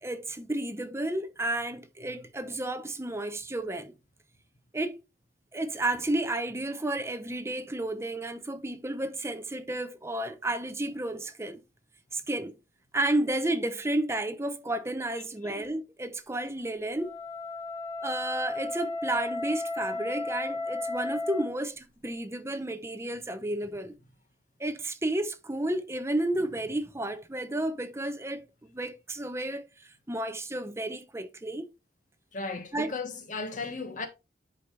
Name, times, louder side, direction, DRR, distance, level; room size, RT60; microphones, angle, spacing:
voice 1, 0.0-3.9 4.7-5.0 5.5-11.6 12.1-12.5 12.9-17.2 18.0-23.9 24.6-28.5 28.7-31.7 32.7-32.9, right 1 dB, 15° right, 0.8 m, -32 dB
Wind instrument woodwind instrument, 16.9-21.6, left 2 dB, 10° left, 2.3 m, -34 dB
voice 2, 32.3-34.1, left 3 dB, 45° left, 1.6 m, -35 dB
11.0 x 5.1 x 3.3 m
head